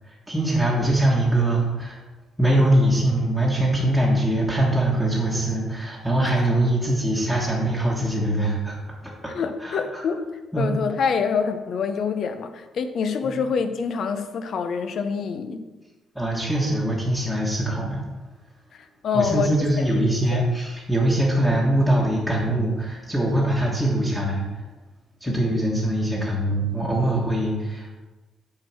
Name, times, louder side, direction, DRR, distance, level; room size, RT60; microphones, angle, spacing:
voice 1, 0.3-2.0 2.4-9.1 9.6-10.0 10.5-10.7 13.2-13.4 16.1-18.0 19.1-24.4 25.2-27.9, right 1 dB, ahead, -7 dB, 1.4 m, -22 dB
voice 2, 9.3-10.3 10.6-15.6 19.0-19.5 19.9-20.4 25.3-25.4, left 6 dB, 55° left, 9 dB, 0.7 m, -26 dB
7.5 x 4.6 x 6.2 m, 1.2 s
cardioid pair, 130°, 0 cm